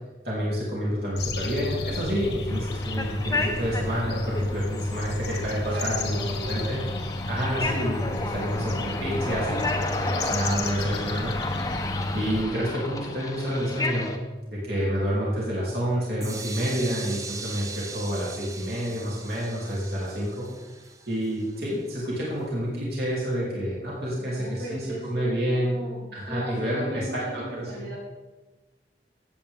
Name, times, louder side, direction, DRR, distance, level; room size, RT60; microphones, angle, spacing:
voice 1, 0.2-6.2 6.5-6.8 7.3-14.1 14.5-20.5 21.1-25.8 26.1-27.9, equal, 60° right, -6 dB, 3.2 m, -29 dB
sound 1, 1.2-12.4, left 2 dB, 75° left, 1.4 m, -31 dB
sound 2, 2.5-14.2, left 2 dB, 20° left, 0.8 m, -33 dB
voice 2, 5.7-6.9 24.2-28.0, right 1 dB, 90° right, -4 dB, 3.7 m, -37 dB
sound 3, 16.2-22.0, right 4 dB, 20° right, 0.7 m, -40 dB
16.0 x 8.2 x 3.6 m, 1.2 s
head